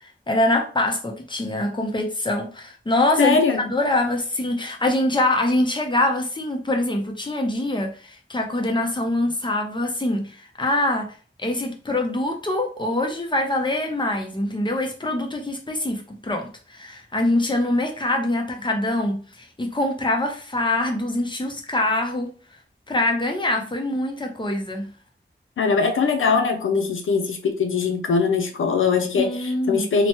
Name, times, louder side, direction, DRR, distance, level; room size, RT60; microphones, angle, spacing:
voice 1, 0.3-3.4 3.6-11.1 11.4-22.3 22.9-24.9 29.2-29.9, left 1 dB, 25° left, 0.7 m, -24 dB
voice 2, 3.2-3.7 25.6-30.1, left 5 dB, 85° left, 0.5 m, -21 dB
2.9 x 2.1 x 2.9 m
wide cardioid pair, 70°, 20 cm